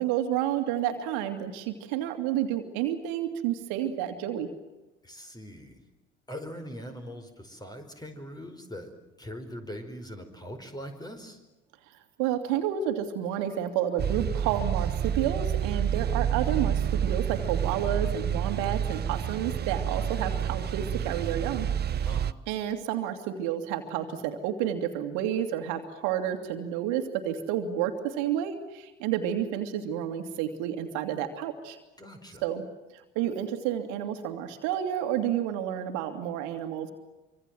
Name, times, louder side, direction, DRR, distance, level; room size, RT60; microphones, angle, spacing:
voice 1, 0.0-4.5 12.2-21.7 21.9-22.1 22.5-31.8 32.4-32.6 33.2-36.9, right 10 dB, 60° right, 7 dB, 2.5 m, -30 dB
voice 2, 5.0-5.8 6.3-8.9 9.2-11.4 22.0-22.3 32.0-32.4, equal, 10° left, 6 dB, 5.0 m, -41 dB
sound 1, 14.0-22.3, right 8 dB, 30° right, 0.8 m, -29 dB
25.5 x 25.0 x 7.8 m, 1.1 s
figure-of-eight pair, 65°, 34 cm